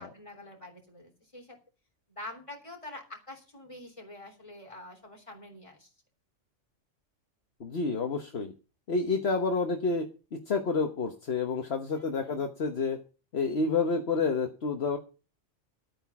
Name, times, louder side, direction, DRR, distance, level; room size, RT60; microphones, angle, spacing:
voice 1, 0.0-1.6 2.1-5.9 11.9-12.4, left 1 dB, 25° left, 2 dB, 3.5 m, -46 dB
voice 2, 7.6-8.5 8.9-10.0 10.3-13.0 13.3-15.0, left 4 dB, 60° left, 4 dB, 1.4 m, -29 dB
12.5 x 8.9 x 5.9 m, 0.34 s
omnidirectional pair, 1.2 m